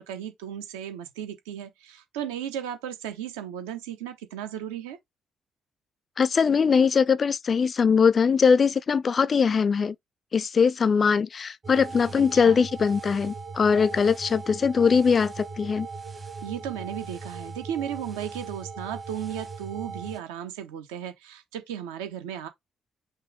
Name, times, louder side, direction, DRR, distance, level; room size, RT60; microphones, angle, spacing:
voice 1, 0.0-5.0 12.3-12.6 16.4-22.5, right 10 dB, 75° right, 0.7 m, -35 dB
voice 2, 6.2-10.0 10.3-15.9, left 6 dB, 40° left, 0.3 m, -21 dB
sound 1, 11.6-20.2, right 4 dB, 35° right, 1.0 m, -39 dB
5.6 x 2.5 x 3.5 m
figure-of-eight pair, 40°, 0 cm